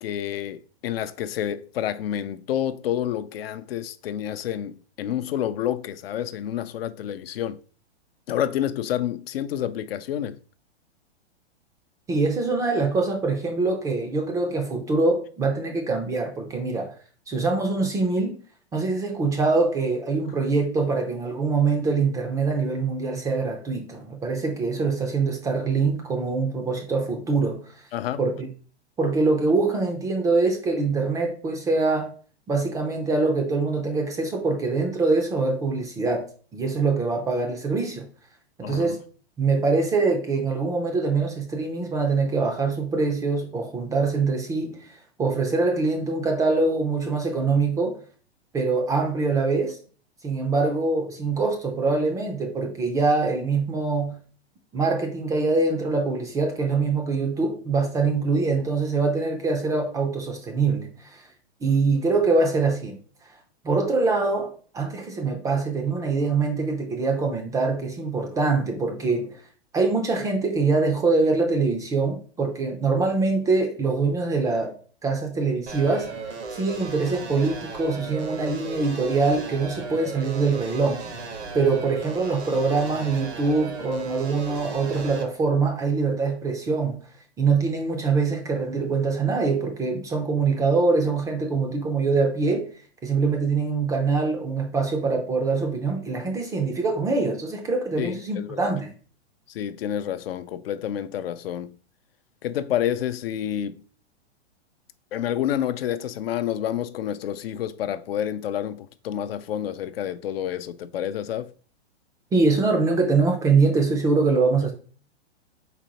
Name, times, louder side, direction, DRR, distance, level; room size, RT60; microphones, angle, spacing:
voice 1, 0.0-7.6 8.3-10.4 27.9-28.2 38.6-39.0 98.0-98.7 99.5-101.8 102.4-103.7 105.1-111.5, left 10 dB, 60° left, 0.4 m, -29 dB
voice 2, 12.1-17.0 17.3-18.4 18.7-27.9 28.2-28.5 29.0-32.1 32.5-38.1 38.6-39.0 39.4-48.0 48.5-49.8 50.2-54.2 54.7-61.3 61.6-63.0 63.6-69.4 69.7-74.7 75.0-76.1 76.5-81.0 81.5-87.0 87.4-92.7 93.0-98.9 112.3-114.7, right 4 dB, 10° right, 0.4 m, -24 dB
sound 1, 75.7-85.2, right 4 dB, 85° right, 1.2 m, -36 dB
4.2 x 4.0 x 2.9 m
hypercardioid pair, 120°, 33 cm